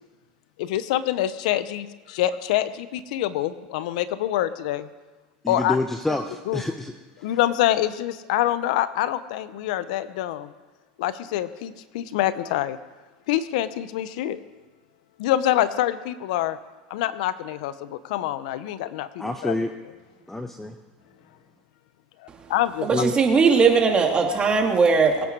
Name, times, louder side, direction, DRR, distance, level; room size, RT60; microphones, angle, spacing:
voice 1, 0.6-4.9 5.5-5.8 6.1-6.2 6.5-6.6 7.2-10.5 11.0-12.8 13.3-14.4 15.2-16.6 16.9-19.5 22.5-23.0, left 13 dB, 70° left, 14 dB, 0.8 m, -25 dB
voice 2, 5.4-6.9 7.2-7.4 19.2-19.7 20.3-20.8 22.9-23.1, left 2 dB, 5° left, 7 dB, 0.9 m, -27 dB
voice 3, 22.8-25.2, right 5 dB, 25° right, 3 dB, 2.5 m, -19 dB
22.5 x 8.7 x 4.7 m, 1.2 s
supercardioid pair, 110°, 4 cm